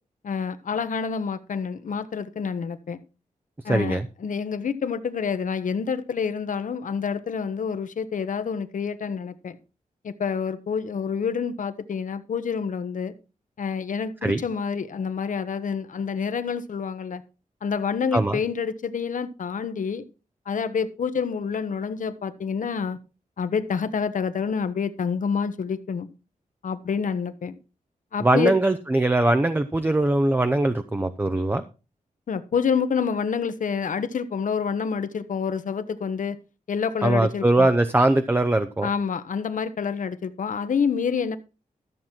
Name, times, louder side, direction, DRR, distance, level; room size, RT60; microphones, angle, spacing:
voice 1, 0.2-3.0 3.6-9.6 10.0-13.1 13.6-17.2 17.6-20.0 20.5-23.0 23.4-26.1 26.6-27.6 28.1-28.5 32.3-36.4 36.7-37.7 38.8-41.4, left 6 dB, 65° left, 12 dB, 1.0 m, -28 dB
voice 2, 3.7-4.1 14.2-14.4 18.1-18.4 28.2-31.6 37.0-38.9, right 2 dB, 15° right, 8 dB, 0.6 m, -21 dB
13.5 x 7.3 x 4.5 m, 0.32 s
wide cardioid pair, 150°, 14 cm